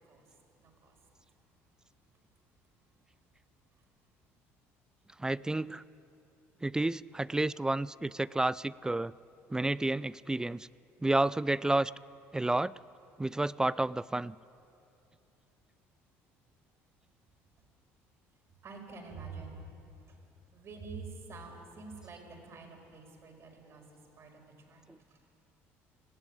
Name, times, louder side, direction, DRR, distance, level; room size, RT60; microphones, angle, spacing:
voice 1, 0.6-1.0 18.6-19.6 20.1-20.2 20.5-23.8 24.2-24.9, right 4 dB, 50° right, 3 dB, 5.2 m, -47 dB
voice 2, 5.2-5.8 6.6-9.1 9.5-10.7 11.0-11.9 12.3-12.7 13.2-14.4 24.9-25.0, right 2 dB, 10° right, 20 dB, 0.4 m, -30 dB
19.5 x 15.5 x 8.9 m, 2.7 s
supercardioid pair, 80°, 6 cm